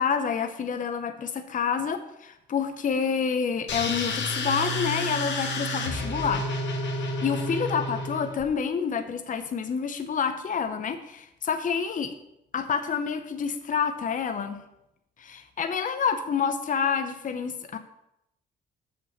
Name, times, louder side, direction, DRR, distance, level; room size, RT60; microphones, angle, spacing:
voice 1, 0.0-6.4 7.0-12.1 12.5-14.6 15.2-17.8, left 6 dB, 40° left, 8 dB, 0.8 m, -28 dB
sound 1, 3.7-8.4, left 2 dB, 65° left, 1.6 m, -30 dB
7.0 x 5.4 x 6.4 m, 0.83 s
cardioid pair, 90°, 20 cm